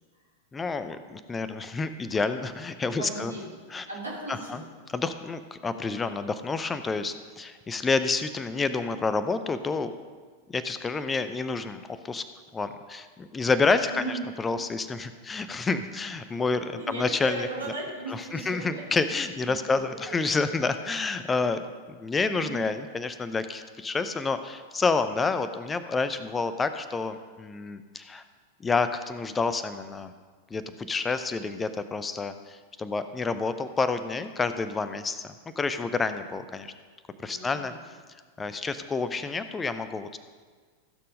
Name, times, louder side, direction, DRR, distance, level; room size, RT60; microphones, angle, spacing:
voice 1, 0.5-3.3 3.7-3.9 4.5-4.6 4.9-9.9 10.5-12.2 12.5-14.0 14.4-17.5 18.1-28.2 28.6-30.1 30.5-35.2 35.6-36.7 37.2-37.7 38.4-40.1, left 4 dB, 15° left, 11 dB, 0.7 m, -29 dB
voice 2, 3.0-3.6 3.9-4.6 13.9-14.2 16.8-18.8 19.4-19.5 19.8-20.2 22.4-22.7 37.3-37.8, right 2 dB, 80° right, -5 dB, 3.8 m, -37 dB
15.5 x 6.9 x 5.3 m, 1.5 s
figure-of-eight pair, 90°, 0 cm